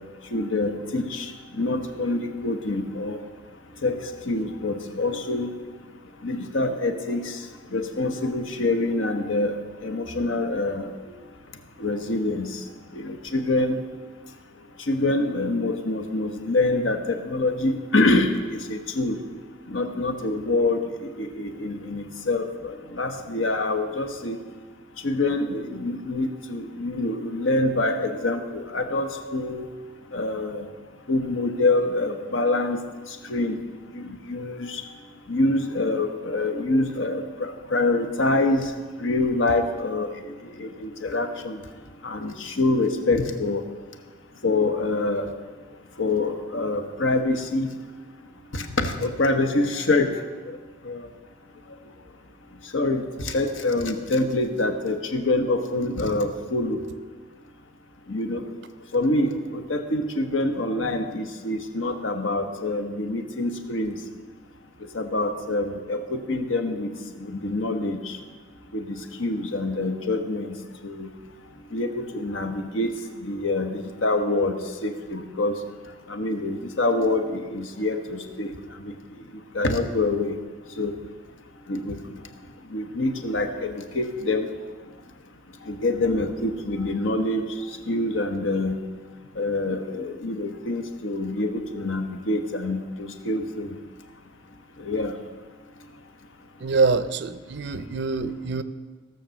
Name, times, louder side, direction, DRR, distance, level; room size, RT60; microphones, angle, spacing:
voice 1, 0.3-3.2 3.8-5.5 6.2-7.4 7.7-10.9 11.8-12.6 12.9-13.8 14.8-19.2 19.7-24.4 25.0-29.7 30.1-30.7 31.1-32.8 33.1-33.6 33.9-34.8 35.3-38.7 39.0-41.6 42.0-43.6 44.4-45.3 46.0-47.7 48.5-50.2 50.8-51.1 52.7-56.8 58.1-58.4 58.9-64.0 64.9-66.9 67.2-68.2 68.7-70.6 70.8-71.1 71.7-72.9 73.2-75.6 76.1-78.5 78.8-78.9 79.5-80.4 80.8-80.9 81.7-82.0 82.7-84.5 85.6-87.5 87.9-88.8 89.3-93.8 94.8-95.2, left 2 dB, 75° left, 6 dB, 1.1 m, -26 dB
voice 2, 96.6-98.6, right 4 dB, 60° right, 13 dB, 0.5 m, -24 dB
16.5 x 6.7 x 6.4 m, 1.5 s
head